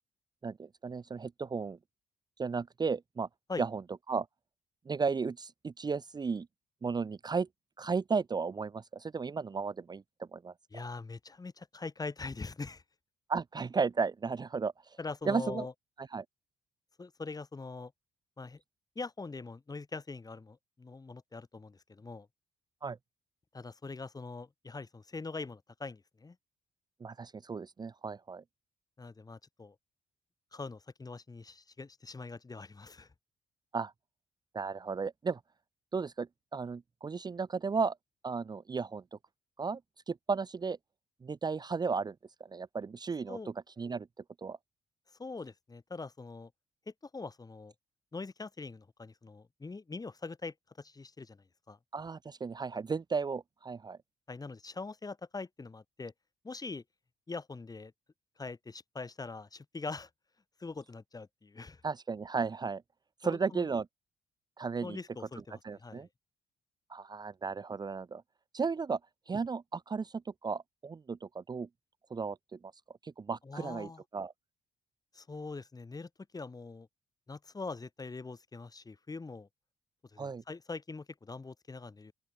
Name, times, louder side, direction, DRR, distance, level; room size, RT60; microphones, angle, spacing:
voice 1, 0.4-1.8 2.4-3.3 3.6-3.8 4.1-4.3 4.9-6.5 6.8-7.5 7.8-10.8 13.3-15.0 15.2-15.7 16.0-16.2 22.8-23.0 27.0-28.4 33.7-33.9 34.5-35.4 35.9-38.0 38.2-39.0 39.6-39.8 40.1-40.8 41.2-42.1 42.4-44.1 44.4-44.6 51.9-54.0 61.8-62.8 63.2-63.9 64.6-65.0 65.6-66.1 66.9-68.2 68.5-69.0 69.3-71.7 72.1-72.6 73.0-74.3 80.2-80.4, right 5 dB, 35° right, 0.9 m, -34 dB
voice 2, 10.7-12.8 15.0-15.7 17.0-17.9 18.4-18.6 18.9-22.3 23.5-26.4 29.0-29.7 30.5-33.1 43.3-43.5 45.2-46.5 46.9-47.7 48.1-51.8 54.3-56.1 56.4-56.8 57.3-57.9 58.4-60.1 60.6-61.8 63.2-63.7 64.8-66.1 73.4-74.0 75.1-76.9 77.3-79.5 80.1-82.1, left 3 dB, 30° left, 4.9 m, -43 dB
open air
hypercardioid pair, 50°, 13 cm